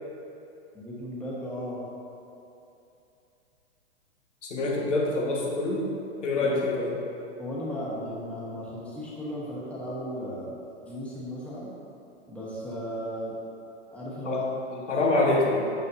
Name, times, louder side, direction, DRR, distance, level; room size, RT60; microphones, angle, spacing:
voice 1, 0.7-1.8 6.3-6.6 7.4-10.6 10.8-11.7 12.3-13.4 13.9-14.4 14.7-14.8, equal, 5° left, -7 dB, 1.3 m, -35 dB
voice 2, 4.4-5.9 6.2-7.0 14.2-14.4 14.9-15.7, left 2 dB, 85° left, -2 dB, 1.7 m, -25 dB
8.5 x 6.8 x 2.7 m, 2.8 s
hypercardioid pair, 140°, 36 cm